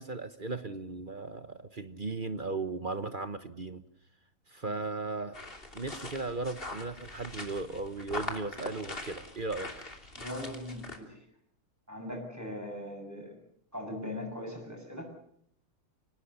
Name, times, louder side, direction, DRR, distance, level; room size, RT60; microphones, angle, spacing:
voice 1, 0.0-3.8 4.5-5.4 5.7-9.7, right 3 dB, 40° right, 11 dB, 0.7 m, -36 dB
sound 1, 5.3-11.0, left 2 dB, 25° left, 3.0 m, -42 dB
voice 2, 10.2-11.2 11.9-13.4 13.7-15.1, left 1 dB, 5° right, 3 dB, 7.5 m, -40 dB
25.5 x 18.5 x 7.1 m, 0.68 s
omnidirectional pair, 2.4 m